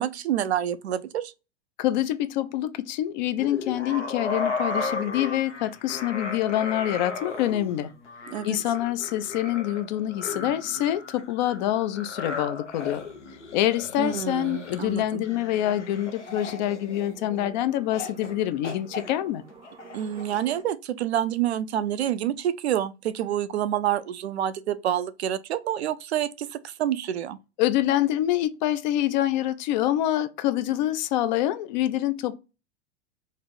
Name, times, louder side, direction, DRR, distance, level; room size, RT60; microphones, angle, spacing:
voice 1, 0.0-1.3 8.3-8.6 14.0-15.2 19.9-27.4, right 11 dB, 70° right, 0.5 m, -28 dB
voice 2, 1.8-7.9 8.4-13.0 13.5-19.4 27.6-32.4, left 13 dB, 40° left, 0.4 m, -26 dB
sound 1, 3.4-17.4 17.9-18.3 18.6-20.4, left 3 dB, 85° left, 0.8 m, -35 dB
sound 2, 15.2-20.6, right 6 dB, 15° right, 0.5 m, -48 dB
3.1 x 2.5 x 4.0 m
figure-of-eight pair, 85°, 34 cm